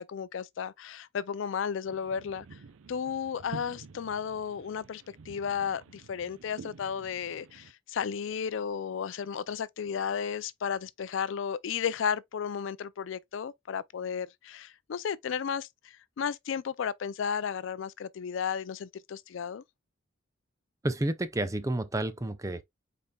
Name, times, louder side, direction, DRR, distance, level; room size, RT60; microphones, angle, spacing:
voice 1, 0.0-2.5 2.9-19.6, left 7 dB, 70° left, 0.4 m, -34 dB
sound 1, 1.8-7.7, right 4 dB, 85° right, 0.5 m, -49 dB
voice 2, 20.8-22.6, right 1 dB, 15° right, 0.5 m, -30 dB
5.2 x 4.2 x 2.3 m
head